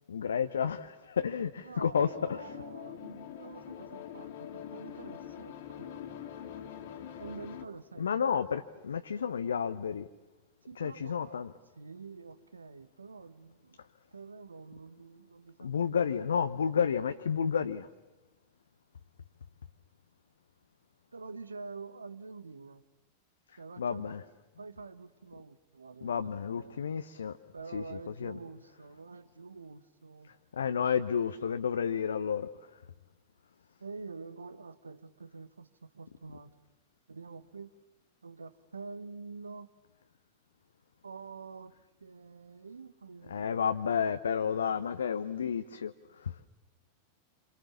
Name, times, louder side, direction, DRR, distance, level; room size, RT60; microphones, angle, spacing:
voice 1, 0.1-2.5 8.0-10.1 10.8-11.5 15.6-17.9 23.8-24.2 26.0-27.4 27.7-28.4 30.5-32.5 43.3-46.5, left 7 dB, 70° left, 9 dB, 0.9 m, -31 dB
voice 2, 1.6-6.0 7.2-8.1 10.6-11.4 11.8-13.8 14.1-16.3 21.1-22.8 23.6-24.2 24.6-26.8 27.5-30.3 33.8-35.7 35.9-36.5 37.1-37.7 38.2-39.7 41.0-41.7 42.0-43.7, right 4 dB, 75° right, 13 dB, 1.3 m, -47 dB
sound 1, 1.9-7.7, left 9 dB, 55° left, 2.4 m, -44 dB
27.5 x 27.5 x 7.3 m, 1.2 s
figure-of-eight pair, 90°, 0 cm